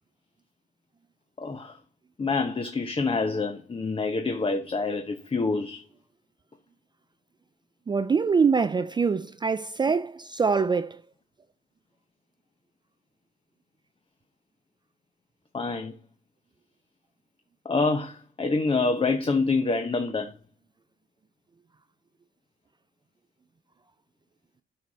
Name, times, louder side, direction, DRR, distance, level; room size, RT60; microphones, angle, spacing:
voice 1, 1.4-1.8 2.2-5.8 15.5-15.9 17.6-20.3, left 3 dB, 25° left, 0.9 m, -26 dB
voice 2, 7.9-11.0, right 5 dB, 25° right, 0.4 m, -24 dB
8.9 x 4.9 x 4.1 m
cardioid pair, 90°, 20 cm